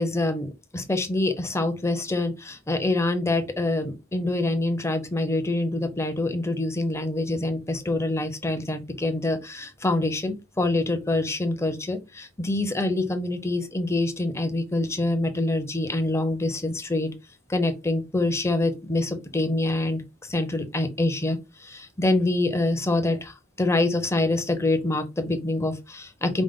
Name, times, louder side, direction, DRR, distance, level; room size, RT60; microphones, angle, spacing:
voice 1, 0.0-17.1 17.5-26.4, left 2 dB, 15° left, 7 dB, 0.6 m, -26 dB
5.1 x 2.1 x 3.5 m, 0.25 s
head